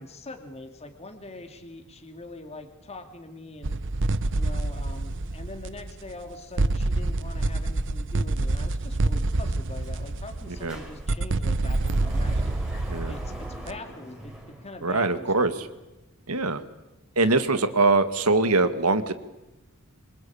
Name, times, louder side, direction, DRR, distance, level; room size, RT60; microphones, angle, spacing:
voice 1, 0.0-3.8 4.3-12.5 13.1-15.6, left 2 dB, 30° left, 5 dB, 2.6 m, -43 dB
sound 1, 3.6-6.3 6.6-13.8, right 2 dB, 60° right, 0.9 m, -27 dB
Sliding door, 9.8-9.9 10.2-15.2, equal, 5° right, 4.6 m, -44 dB
voice 2, 14.8-15.7 16.3-16.6 17.2-19.1, right 3 dB, 80° right, 10 dB, 1.9 m, -23 dB
26.5 x 25.5 x 8.7 m, 1.0 s
head